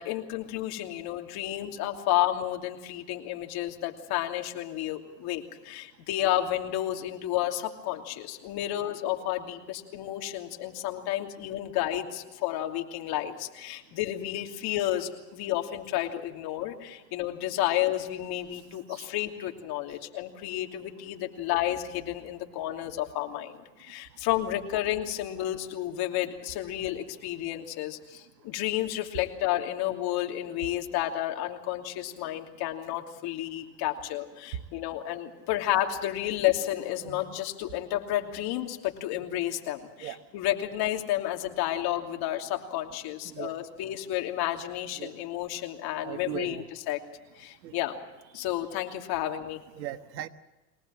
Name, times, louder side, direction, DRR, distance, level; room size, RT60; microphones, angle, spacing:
voice 1, 0.0-47.0 47.3-48.0 48.3-49.6, left 13 dB, 50° left, 3 dB, 2.9 m, -31 dB
voice 2, 46.0-46.7 47.6-47.8 49.7-50.3, right 12 dB, 80° right, 10 dB, 1.5 m, -38 dB
23.0 x 19.0 x 7.6 m, 1.1 s
supercardioid pair, 120°, 49 cm